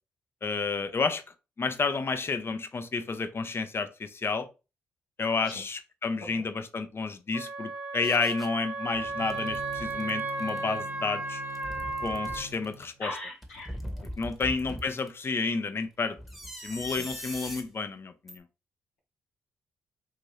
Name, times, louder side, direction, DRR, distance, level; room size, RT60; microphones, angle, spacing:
voice 1, 0.4-1.2 1.6-4.5 5.2-11.4 12.0-13.2 14.2-16.2 16.6-18.4, left 4 dB, 35° left, 0.5 m, -30 dB
Wind instrument woodwind instrument, 7.3-12.4, right 3 dB, 25° right, 0.8 m, -34 dB
sound 1, 8.0-8.5 8.9-10.6 11.4-12.8 13.4-15.1 16.2-17.7 18.3-18.4, equal, ahead, 1.0 m, -41 dB
Bowed string instrument, 9.0-13.1, right 2 dB, 75° right, 1.2 m, -46 dB
voice 2, 13.0-13.7 16.9-17.0, left 2 dB, 90° left, 1.0 m, -39 dB
2.7 x 2.6 x 3.1 m
hypercardioid pair, 40°, 7 cm